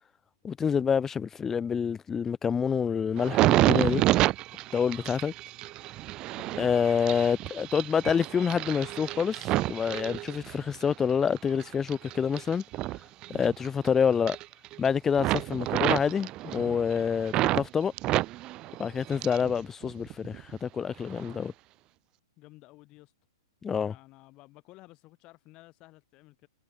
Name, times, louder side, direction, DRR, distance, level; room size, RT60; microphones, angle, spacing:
voice 1, 0.4-4.0 4.7-5.3 6.6-12.6 13.3-14.4 14.8-17.9 18.8-21.5 23.6-23.9, left 6 dB, 15° left, 0.8 m, -27 dB
sound 1, 3.2-10.8 11.3-13.9 14.1-14.9 15.2-17.7 18.0-19.5 19.8-20.6 21.1-21.3, right 17 dB, 30° right, 0.6 m, -29 dB
voice 2, 22.4-23.1 23.7-26.5, left 20 dB, 35° left, 5.8 m, -54 dB
hypercardioid pair, 130°, 2 cm